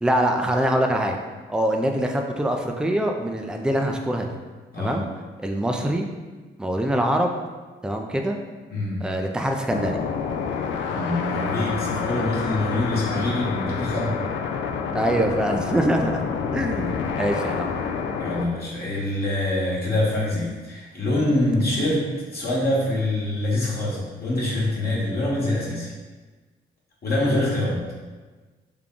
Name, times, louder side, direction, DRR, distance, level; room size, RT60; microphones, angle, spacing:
voice 1, 0.0-1.2 1.5-4.3 4.8-5.1 5.4-6.1 6.6-7.3 7.8-8.4 9.0-10.0 14.9-16.3 16.5-17.7, right 1 dB, 5° right, 3 dB, 0.4 m, -24 dB
voice 2, 8.7-9.1 10.9-14.2 18.2-25.9 27.0-27.8, left 1 dB, 50° left, -5 dB, 1.3 m, -25 dB
sound 1, 9.7-18.5, left 6 dB, 65° left, 0.4 m, -28 dB
3.7 x 2.2 x 3.7 m, 1.3 s
hypercardioid pair, 50°, 21 cm